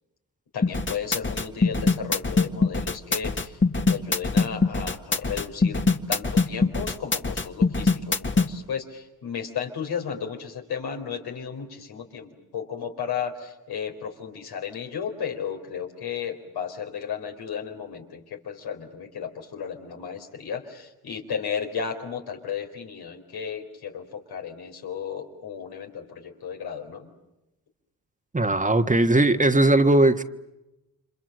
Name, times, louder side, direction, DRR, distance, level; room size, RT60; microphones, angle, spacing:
voice 1, 0.5-27.1, left 7 dB, 85° left, 3 dB, 4.3 m, -34 dB
sound 1, 0.6-8.5, left 3 dB, 30° left, 1.8 m, -22 dB
voice 2, 28.3-30.2, right 2 dB, 20° right, 8 dB, 1.5 m, -19 dB
30.0 x 26.0 x 7.8 m, 0.93 s
cardioid pair, 60°, 37 cm